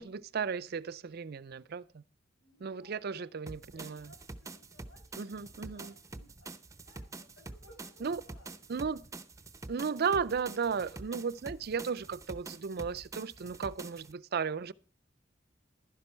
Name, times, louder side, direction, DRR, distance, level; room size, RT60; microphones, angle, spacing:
voice 1, 0.0-2.0 2.6-4.1 5.2-5.9 8.0-8.2 8.7-9.0 9.7-14.7, right 6 dB, 55° right, 0.5 m, -35 dB
voice 2, 2.4-8.5, left 1 dB, 90° left, 6.3 m, -61 dB
sound 1, 3.5-14.1, right 2 dB, 15° right, 0.7 m, -47 dB
12.0 x 10.5 x 4.4 m
head